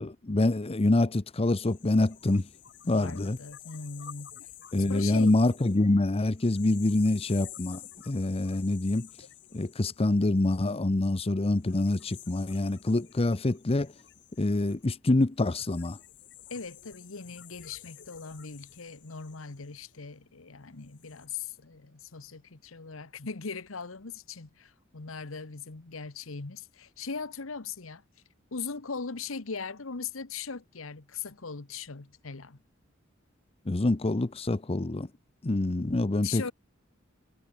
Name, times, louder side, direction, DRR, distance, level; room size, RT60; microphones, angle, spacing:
voice 1, 0.0-2.5 2.9-3.4 4.7-9.1 9.5-13.9 14.4-16.0 33.7-35.1 35.4-36.5, left 2 dB, 30° left, 0.7 m, -26 dB
sound 1, 1.7-10.9 11.5-20.2 20.7-21.3, left 11 dB, 60° left, 3.1 m, -51 dB
voice 2, 2.8-4.4 4.8-5.3 16.5-28.0 28.5-32.6 36.2-36.5, left 5 dB, 80° left, 1.2 m, -39 dB
head